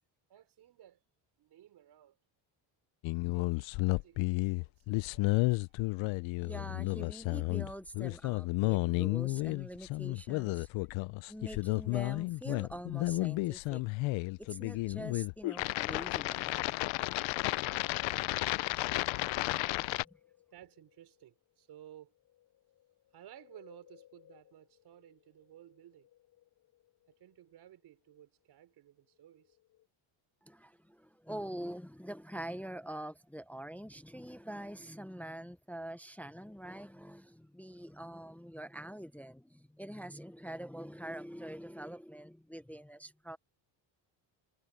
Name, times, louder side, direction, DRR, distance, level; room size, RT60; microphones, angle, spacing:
voice 1, 0.3-1.0 1.4-2.2 3.3-5.9 20.5-22.1 23.1-26.1 27.1-29.6, right 11 dB, 55° right, 4.9 m, -57 dB
sound 1, 3.0-20.0, left 22 dB, 75° left, 0.6 m, -32 dB
voice 2, 6.4-10.7 11.3-13.8 14.4-16.9 19.5-19.6 30.4-43.4, right 1 dB, 5° left, 0.5 m, -45 dB
sound 2, 17.3-29.9, left 13 dB, 45° left, 4.8 m, -66 dB
cardioid pair, 145°, 47 cm